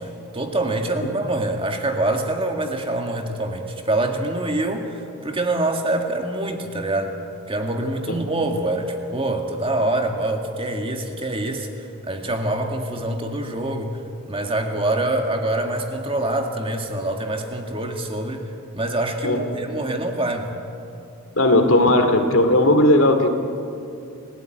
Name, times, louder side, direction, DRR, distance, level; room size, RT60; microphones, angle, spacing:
voice 1, 0.0-7.2 7.5-14.0 14.3-18.4 18.7-20.5, right 2 dB, 25° right, 4 dB, 1.9 m, -25 dB
voice 2, 21.4-23.3, left 1 dB, 60° left, 6 dB, 2.5 m, -16 dB
29.0 x 16.5 x 9.1 m, 2.7 s
head